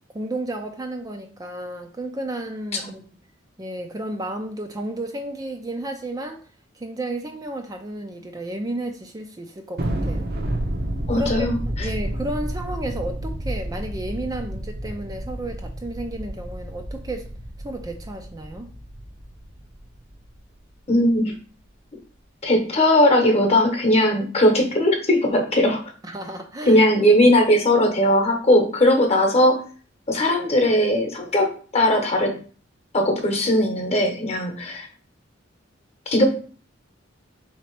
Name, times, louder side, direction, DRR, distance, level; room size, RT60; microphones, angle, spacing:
voice 1, 0.1-3.0 3.6-6.4 6.7-10.4 11.1-17.3 17.6-18.7 26.0-26.8, right 1 dB, 20° right, 4 dB, 0.4 m, -32 dB
Thunder, 9.8-20.4, right 1 dB, 55° right, 0.7 m, -30 dB
voice 2, 11.1-11.9 20.9-21.3 22.4-25.8 26.7-29.6 30.1-32.3 32.9-34.9 36.1-36.3, left 1 dB, 35° left, 4 dB, 1.0 m, -19 dB
3.9 x 2.9 x 4.5 m, 0.41 s
head